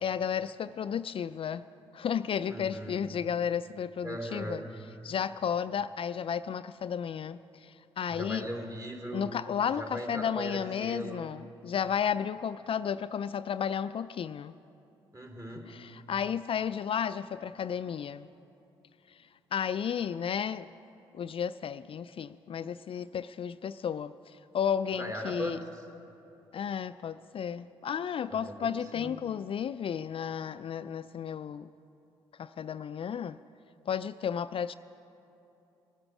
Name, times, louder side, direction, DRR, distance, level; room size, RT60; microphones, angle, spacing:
voice 1, 0.0-1.6 1.9-4.6 5.0-8.5 9.1-14.5 15.6-18.3 19.1-20.7 21.1-25.6 26.5-31.7 32.4-33.4 33.9-34.7, left 8 dB, 50° left, 14 dB, 0.4 m, -33 dB
voice 2, 2.5-3.0 4.0-4.6 8.1-9.3 9.8-11.2 15.1-15.7 24.9-25.6 28.3-29.1, equal, 30° right, 2 dB, 3.2 m, -38 dB
19.0 x 9.9 x 6.0 m, 2.9 s
hypercardioid pair, 50°, 12 cm